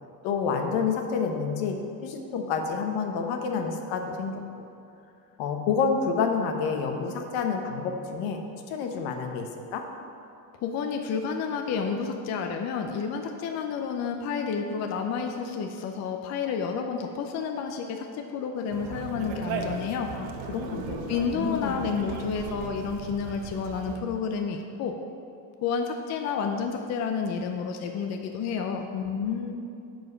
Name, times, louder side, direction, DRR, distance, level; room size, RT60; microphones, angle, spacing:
voice 1, 0.2-1.8 2.0-4.4 5.4-8.4 8.7-9.8 20.1-21.0 21.3-21.9 28.9-29.5, left 5 dB, 70° left, 4 dB, 1.1 m, -29 dB
voice 2, 10.5-20.1 21.1-25.0 25.6-28.9, left 6 dB, 40° left, 4 dB, 0.5 m, -30 dB
Conversation, 18.7-24.0, right 5 dB, 55° right, 0.9 m, -37 dB
9.7 x 4.7 x 5.5 m, 2.6 s
cardioid pair, 130°, 45 cm